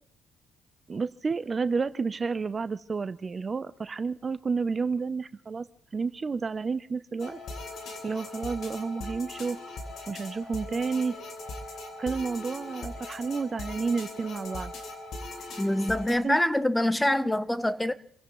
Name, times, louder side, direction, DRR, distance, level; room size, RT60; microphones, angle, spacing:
voice 1, 0.9-5.7 5.9-7.4 8.0-9.6 10.1-11.2 12.0-14.7 16.2-16.4 17.1-17.3, right 4 dB, 35° right, 0.6 m, -30 dB
sound 1, 7.2-16.2, left 2 dB, 70° left, 3.3 m, -40 dB
voice 2, 15.6-17.9, left 1 dB, 10° left, 0.9 m, -25 dB
28.0 x 16.5 x 3.1 m
cardioid pair, 90°, 0 cm